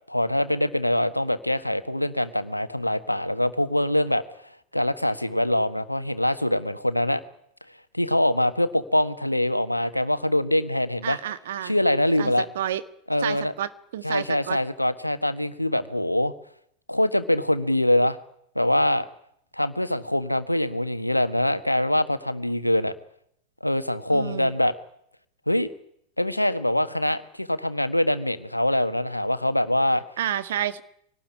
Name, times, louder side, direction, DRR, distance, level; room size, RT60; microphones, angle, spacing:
voice 1, 0.1-4.2 4.7-7.2 7.9-11.2 11.6-12.5 13.1-13.5 14.0-16.3 16.9-18.2 18.5-19.1 19.5-22.9 23.6-24.7 25.5-25.7 26.2-30.0, left 1 dB, 85° left, 12 dB, 1.5 m, -24 dB
voice 2, 11.0-11.8 12.2-12.8 13.2-14.6 24.1-24.5 30.2-30.8, right 11 dB, 60° right, 12 dB, 1.7 m, -30 dB
24.5 x 19.0 x 9.9 m, 0.71 s
figure-of-eight pair, 90°, 0 cm